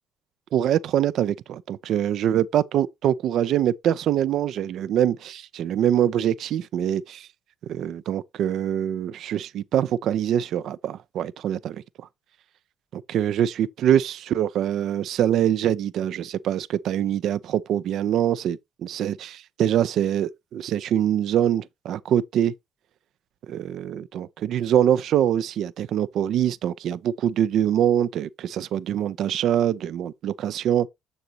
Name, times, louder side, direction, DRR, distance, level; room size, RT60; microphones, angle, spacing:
voice 1, 0.5-7.3 7.7-12.1 12.9-22.5 23.5-30.9, right 10 dB, 65° right, 0.4 m, -24 dB
6.8 x 6.5 x 2.8 m
hypercardioid pair, 60°, 0 cm